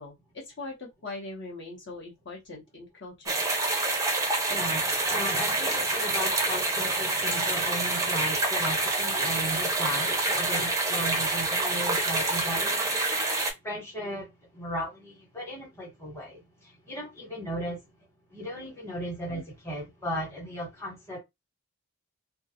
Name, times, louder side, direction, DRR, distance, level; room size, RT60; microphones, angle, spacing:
voice 1, 0.0-3.4 19.3-19.4, left 2 dB, 55° left, 0.8 m, -41 dB
sound 1, 3.3-13.5, right 2 dB, 15° right, 0.4 m, -27 dB
voice 2, 4.5-13.3 13.6-17.8 18.3-21.2, equal, 10° left, 1.0 m, -36 dB
2.4 x 2.3 x 2.7 m
head